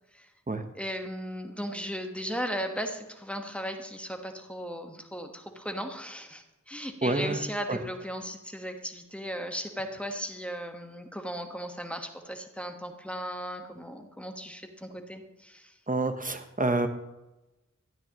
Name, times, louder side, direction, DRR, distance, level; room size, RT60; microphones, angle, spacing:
voice 1, 0.7-15.8, equal, 5° left, 4 dB, 1.4 m, -36 dB
voice 2, 7.0-7.4 7.7-7.8 15.9-16.9, right 2 dB, 30° right, 7 dB, 1.1 m, -27 dB
12.5 x 9.6 x 3.1 m, 1.0 s
wide cardioid pair, 45°, 29 cm